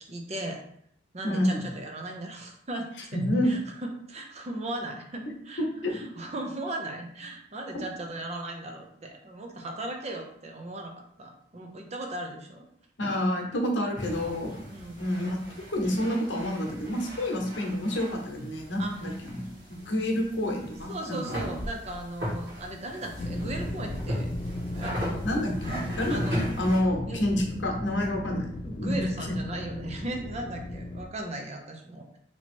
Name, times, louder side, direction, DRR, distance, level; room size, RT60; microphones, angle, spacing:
voice 1, 0.1-0.6 1.1-3.2 3.4-5.6 5.9-10.9 11.2-12.7 14.7-15.1 18.8-19.0 20.9-24.3 24.7-25.5 26.1-26.4 27.1-27.5 28.7-32.2, right 1 dB, 35° right, 2 dB, 0.6 m, -37 dB
voice 2, 1.2-1.7 3.1-3.6 5.8-6.0 13.0-14.5 15.0-15.4 15.7-21.4 25.2-28.5 28.8-29.4, left 1 dB, 85° left, 1 dB, 0.9 m, -28 dB
sound 1, 13.9-26.8, equal, 60° right, 1.5 m, -37 dB
sound 2, 23.2-31.1, left 1 dB, 30° left, 0.3 m, -36 dB
2.9 x 2.9 x 4.3 m, 0.68 s
head